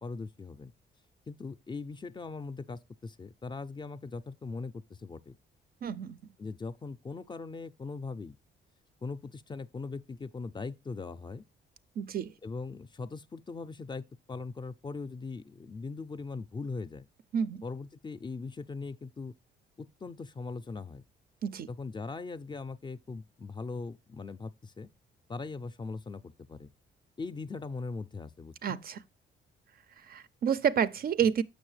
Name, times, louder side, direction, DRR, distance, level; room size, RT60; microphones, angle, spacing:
voice 1, 0.0-0.7 1.3-5.4 6.4-8.3 9.0-11.4 12.4-17.1 17.6-19.3 19.8-21.0 21.7-24.9 25.3-26.7 27.2-28.8, left 4 dB, 25° left, 0.4 m, -40 dB
voice 2, 5.8-6.2 12.0-12.3 17.3-17.6 21.4-21.7 28.6-29.0 30.0-31.4, right 8 dB, 50° right, 0.4 m, -29 dB
6.4 x 6.0 x 3.2 m
cardioid pair, 90°, 20 cm